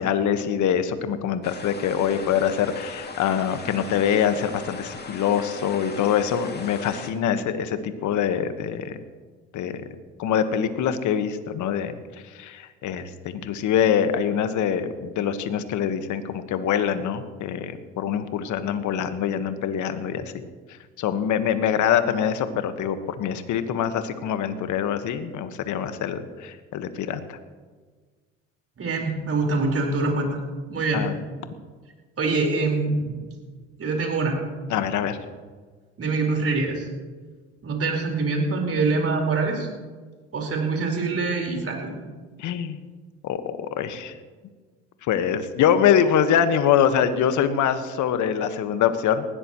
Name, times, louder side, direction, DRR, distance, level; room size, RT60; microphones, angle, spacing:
voice 1, 0.0-9.0 9.5-9.8 10.2-11.9 12.4-20.3 21.0-27.4 30.9-31.2 34.7-35.2 42.4-42.8 43.2-44.1 45.1-49.3, left 8 dB, 55° left, 10 dB, 1.5 m, -24 dB
sound 1, 1.4-7.1, left 4 dB, 30° left, 2.5 m, -39 dB
voice 2, 28.8-30.4 30.7-31.1 32.2-33.2 33.8-34.4 36.0-36.9 37.6-39.7 40.3-41.9, right 3 dB, 40° right, 1 dB, 4.7 m, -24 dB
19.5 x 16.0 x 3.1 m, 1.4 s
hypercardioid pair, 65°, 35 cm